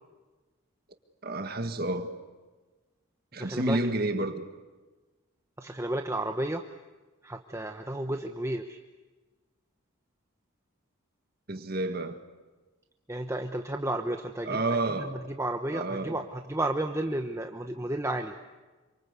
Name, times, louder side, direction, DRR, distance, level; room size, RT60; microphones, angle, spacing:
voice 1, 1.2-2.1 3.3-4.4 11.5-12.2 14.5-15.2 15.7-16.2, right 2 dB, 45° right, 1.8 m, -30 dB
voice 2, 3.4-3.8 5.6-6.6 7.2-8.8 13.1-14.6 14.9-18.3, right 1 dB, 15° right, 1.0 m, -32 dB
27.5 x 25.5 x 8.2 m
head